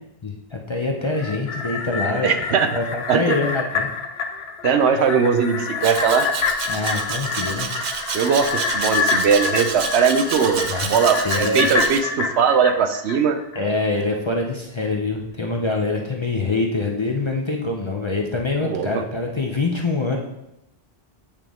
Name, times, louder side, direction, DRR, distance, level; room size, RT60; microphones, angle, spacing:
voice 1, 0.2-2.3 2.7-3.9 6.7-7.8 10.7-11.7 13.5-20.2, left 3 dB, 35° left, 0 dB, 0.5 m, -25 dB
sound 1, 1.0-13.6 14.0-14.1, left 5 dB, 75° left, 0.9 m, -27 dB
voice 2, 2.2-2.7 3.1-3.4 4.6-6.3 8.1-13.4 18.6-18.9, right 6 dB, 80° right, 7 dB, 0.9 m, -19 dB
Domestic sounds home sounds, 5.8-12.0, right 6 dB, 55° right, 0.6 m, -29 dB
8.4 x 3.7 x 3.4 m, 0.87 s
omnidirectional pair, 1.1 m